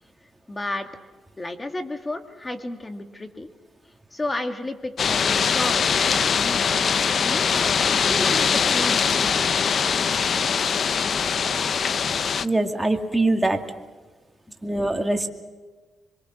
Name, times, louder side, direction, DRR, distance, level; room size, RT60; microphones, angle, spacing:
voice 1, 0.5-0.9 1.4-3.5 4.1-7.5 7.8-10.0, left 2 dB, 20° left, 6 dB, 2.2 m, -33 dB
sound 1, 5.0-12.4, left 6 dB, 50° left, 0.6 m, -22 dB
voice 2, 12.4-13.6 14.6-15.3, right 2 dB, 10° right, 3 dB, 2.3 m, -23 dB
25.0 x 23.5 x 6.3 m, 1.3 s
cardioid pair, 105°, 0 cm